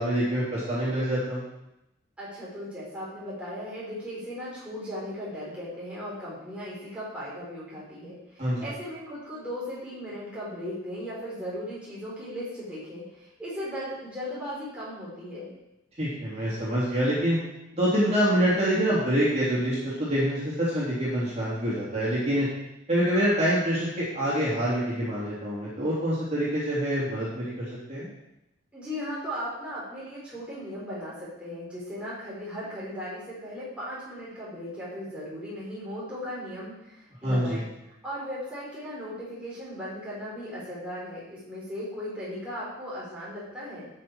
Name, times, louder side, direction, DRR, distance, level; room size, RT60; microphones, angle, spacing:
voice 1, 0.0-1.4 8.4-8.7 16.0-17.4 17.7-22.5 22.9-28.1 37.2-37.6, equal, 30° right, -9 dB, 3.4 m, -26 dB
voice 2, 2.2-15.5 28.7-37.7 38.0-43.9, equal, 5° right, -8 dB, 4.0 m, -37 dB
12.5 x 6.8 x 4.6 m, 0.88 s
head